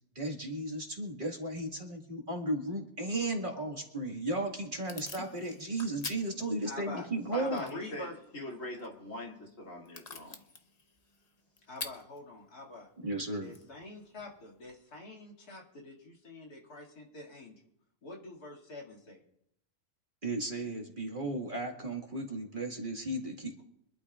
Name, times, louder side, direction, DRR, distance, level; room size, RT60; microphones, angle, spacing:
voice 1, 0.2-7.6 13.0-13.5 20.2-23.6, right 2 dB, 35° right, 0 dB, 1.9 m, -35 dB
Packing tape duct tape / Tearing, 4.0-14.8, left 4 dB, 35° left, 0.8 m, -50 dB
voice 2, 6.6-7.1 7.4-8.2 11.7-12.9 13.2-17.5 18.0-19.2, left 3 dB, 90° left, -2 dB, 2.9 m, -45 dB
voice 3, 7.3-8.1 8.3-10.4, left 1 dB, 55° left, -2 dB, 3.0 m, -42 dB
26.0 x 11.5 x 2.4 m, 0.77 s
omnidirectional pair, 1.6 m